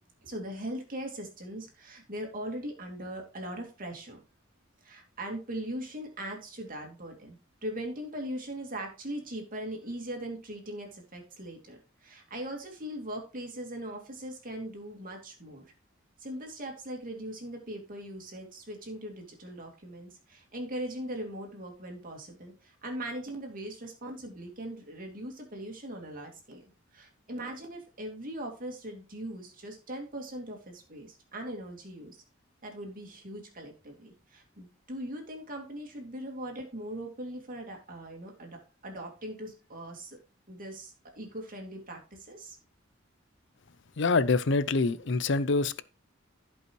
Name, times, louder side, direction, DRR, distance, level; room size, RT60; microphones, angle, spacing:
voice 1, 0.2-4.2 4.8-15.7 16.2-26.6 26.9-32.2 32.6-40.2 40.5-42.6, right 1 dB, 45° right, 2.6 m, -40 dB
voice 2, 44.0-45.8, left 3 dB, 65° left, 0.6 m, -25 dB
15.5 x 5.5 x 3.1 m
head